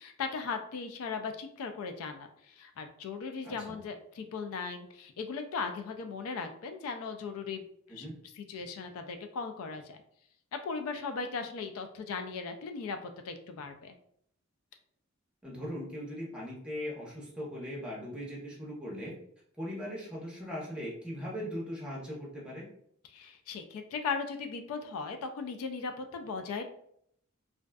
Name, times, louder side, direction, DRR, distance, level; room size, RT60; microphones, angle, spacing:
voice 1, 0.0-7.6 7.9-8.1 8.3-10.0 10.5-13.9 23.1-26.6, left 5 dB, 80° left, 6 dB, 0.3 m, -38 dB
voice 2, 3.4-3.8 7.9-8.1 15.4-19.2 19.6-22.7, equal, 5° right, -5 dB, 0.7 m, -39 dB
2.5 x 2.2 x 2.2 m, 0.69 s
head